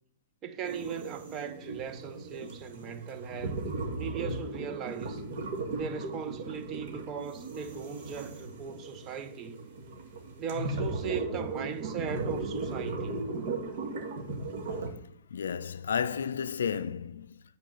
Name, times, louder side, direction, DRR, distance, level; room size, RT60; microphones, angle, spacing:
voice 1, 0.4-3.7 4.0-5.2 5.7-9.6 10.4-13.2, right 7 dB, 30° right, 0.8 m, -38 dB
sound 1, 0.6-14.9, right 3 dB, 60° right, 2.0 m, -37 dB
voice 2, 15.3-17.4, left 7 dB, 80° left, 0.4 m, -32 dB
8.1 x 4.6 x 5.6 m
hypercardioid pair, 125°, 0 cm